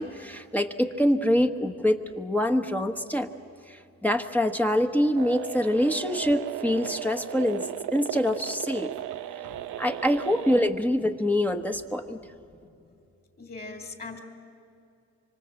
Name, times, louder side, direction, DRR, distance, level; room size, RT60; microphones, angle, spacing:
voice 1, 0.0-3.3 3.7-7.6 7.9-8.9 9.8-12.2, left 1 dB, 5° left, 6 dB, 1.2 m, -25 dB
sound 1, 5.2-10.7, right 12 dB, 90° right, 0.8 m, -36 dB
voice 2, 12.1-13.0 13.4-14.2, left 3 dB, 30° left, 6 dB, 3.4 m, -42 dB
25.5 x 25.0 x 7.7 m, 2.5 s
cardioid pair, 90°, 30 cm